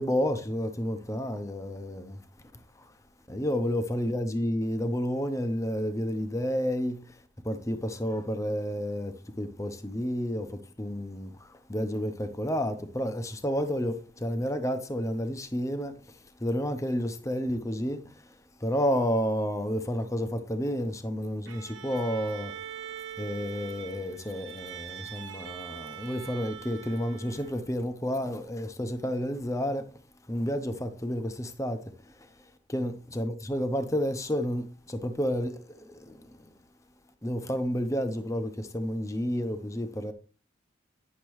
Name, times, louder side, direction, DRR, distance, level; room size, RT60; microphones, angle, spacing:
voice 1, 0.0-2.2 3.3-7.1 7.4-18.0 18.6-22.5 23.2-29.9 30.3-31.8 32.1-32.3 32.7-36.2 37.2-40.1, equal, 15° left, 0.7 m, -30 dB
Bowed string instrument, 21.5-27.8, right 9 dB, 75° right, 1.2 m, -43 dB
10.5 x 6.6 x 3.1 m
head